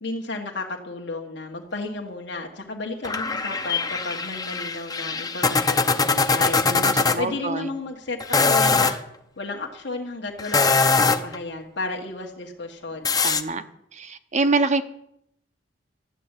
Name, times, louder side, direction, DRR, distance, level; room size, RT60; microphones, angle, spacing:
voice 1, 0.0-6.6 7.2-9.0 9.4-13.2, left 3 dB, 70° left, 1 dB, 1.6 m, -33 dB
sound 1, 3.0-7.2 8.2-9.0 10.4-11.4 13.0-13.4, left 4 dB, 20° left, 0.8 m, -22 dB
voice 2, 6.6-7.7 13.2-13.6 13.9-14.8, right 3 dB, 40° right, 10 dB, 0.9 m, -25 dB
13.0 x 7.9 x 9.9 m, 0.78 s
head